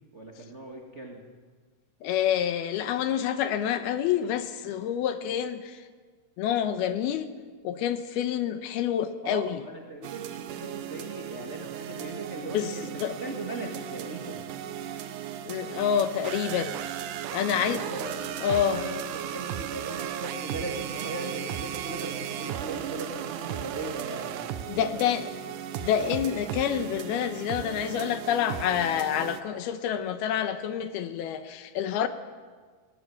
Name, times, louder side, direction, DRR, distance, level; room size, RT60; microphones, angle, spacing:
voice 1, 0.1-1.3 9.2-14.4 17.4-25.2, right 2 dB, 40° right, 1 dB, 0.9 m, -38 dB
voice 2, 2.0-5.8 6.4-7.3 7.6-9.5 12.5-12.7 13.0-13.2 15.5-16.8 17.3-17.8 18.4-18.8 24.7-25.3 25.8-32.1, left 9 dB, 75° left, 10 dB, 2.7 m, -27 dB
sound 1, 10.0-29.4, right 10 dB, 75° right, 2.0 m, -36 dB
19.0 x 18.0 x 9.5 m, 1.5 s
omnidirectional pair, 4.9 m